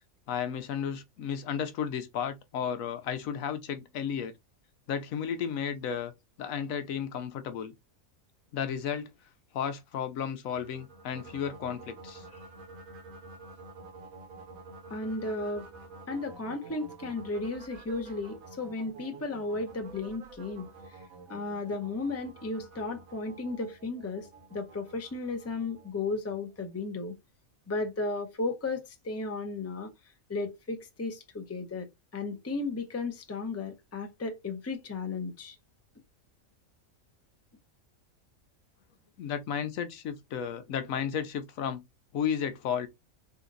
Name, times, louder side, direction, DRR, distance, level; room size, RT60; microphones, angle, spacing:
voice 1, 0.3-4.3 4.9-6.1 6.4-7.7 8.5-9.1 9.5-12.3 39.2-41.8 42.1-42.9, left 8 dB, 75° left, 1.1 m, -33 dB
sound 1, 10.5-26.7, right 3 dB, 80° right, 1.3 m, -49 dB
voice 2, 14.9-15.7 16.1-21.0 21.3-27.1 27.7-29.9 30.3-31.9 32.1-35.6, left 3 dB, 15° left, 0.6 m, -34 dB
4.0 x 2.5 x 3.8 m
omnidirectional pair, 1.4 m